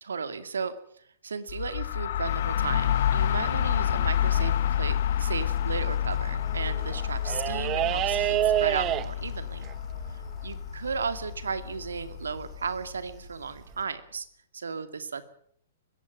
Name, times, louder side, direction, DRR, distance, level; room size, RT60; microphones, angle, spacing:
voice 1, 0.0-9.7 10.1-14.3 14.5-15.2, right 5 dB, 80° right, 12 dB, 2.3 m, -35 dB
sound 1, 1.5-13.1, left 10 dB, 60° left, 1.2 m, -29 dB
sound 2, 2.3-4.8 5.5-5.8 6.2-12.7 13.7-13.8, right 14 dB, 30° right, 0.8 m, -30 dB
21.0 x 16.5 x 8.8 m, 0.63 s
hypercardioid pair, 120°, 0 cm